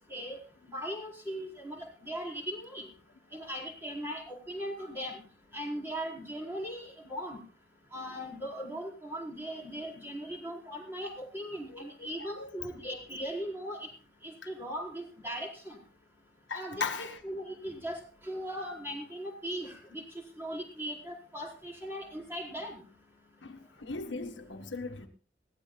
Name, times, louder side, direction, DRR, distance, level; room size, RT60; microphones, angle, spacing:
voice 1, 0.7-2.9 3.3-5.2 5.5-7.4 7.9-13.9 14.2-15.8 16.5-20.0 20.4-22.8, equal, 15° right, 4.5 m, -39 dB
voice 2, 11.7-12.7 14.4-14.5 16.5-17.2 23.4-25.1, left 4 dB, 80° left, 1.6 m, -38 dB
21.0 x 16.0 x 2.4 m
head